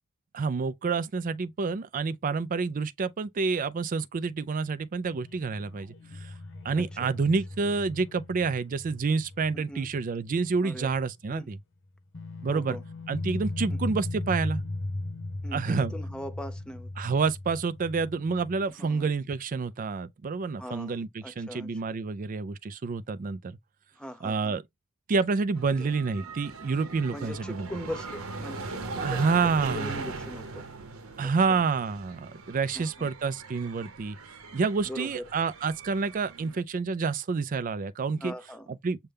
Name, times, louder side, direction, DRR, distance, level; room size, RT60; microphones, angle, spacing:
voice 1, 0.3-5.9 6.2-6.3 6.6-11.6 12.4-12.8 13.1-14.6 15.5-15.9 17.0-23.6 24.2-24.6 25.1-27.8 29.0-29.9 31.2-34.2 34.5-38.3 38.7-39.0, right 4 dB, 40° right, 0.4 m, -28 dB
sound 1, 5.1-10.5 10.8-10.9 12.1-18.7, left 2 dB, 60° left, 0.9 m, -37 dB
voice 2, 6.7-7.2 9.5-9.9 10.6-10.9 11.3-11.5 12.5-12.8 13.7-13.8 15.4-16.9 18.8-19.1 20.6-21.9 24.0-24.6 25.7-25.9 27.1-30.7 31.2-31.6 32.7-33.1 34.9-35.2 38.2-38.7, equal, 5° left, 0.6 m, -41 dB
sound 2, 25.5-36.6, right 3 dB, 75° right, 0.9 m, -40 dB
6.6 x 2.2 x 3.4 m
head